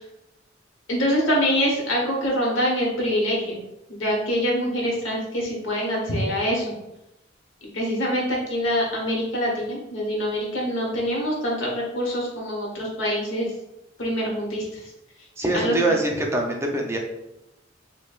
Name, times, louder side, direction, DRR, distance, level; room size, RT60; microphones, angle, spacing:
voice 1, 0.9-3.6 3.9-6.7 7.6-13.5 14.0-14.8 15.5-15.8, equal, 75° left, -2 dB, 1.1 m, -25 dB
voice 2, 15.4-17.0, right 2 dB, 15° right, 0 dB, 0.4 m, -23 dB
5.0 x 2.2 x 2.4 m, 0.90 s
head